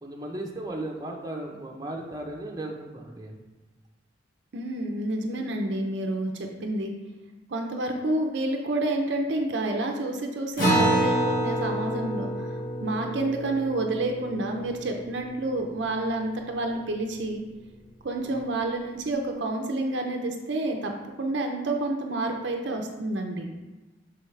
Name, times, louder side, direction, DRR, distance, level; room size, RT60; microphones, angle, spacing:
voice 1, 0.0-3.4 18.2-18.4, right 1 dB, 20° right, -1 dB, 0.7 m, -36 dB
voice 2, 4.5-6.9 7.5-12.5 12.8-17.4 18.0-20.9 21.2-23.5, right 2 dB, 60° right, 3 dB, 0.6 m, -29 dB
Acoustic guitar, 10.6-15.5, right 1 dB, 45° left, 2.0 m, -27 dB
6.2 x 4.7 x 3.2 m, 1.2 s
head